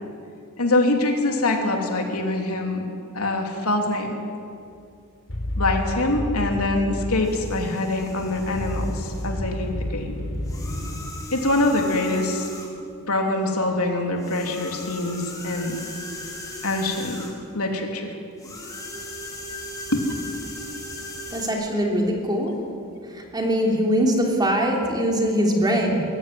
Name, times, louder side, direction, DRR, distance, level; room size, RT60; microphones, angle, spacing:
voice 1, 0.6-2.8 3.1-4.2 5.6-10.1 11.3-12.5 13.1-15.8 16.6-17.2 17.5-18.2 19.9-20.0, left 2 dB, 80° left, 2 dB, 3.1 m, -24 dB
sound 1, 5.3-11.0, left 1 dB, 60° left, 4.2 m, -30 dB
sound 2, 7.2-9.4 10.4-12.9 14.2-17.5 18.4-21.5, left 2 dB, 15° left, 3.6 m, -38 dB
voice 2, 21.3-22.6 23.1-26.0, equal, 20° right, 0 dB, 3.2 m, -22 dB
22.0 x 14.5 x 9.9 m, 2.5 s
head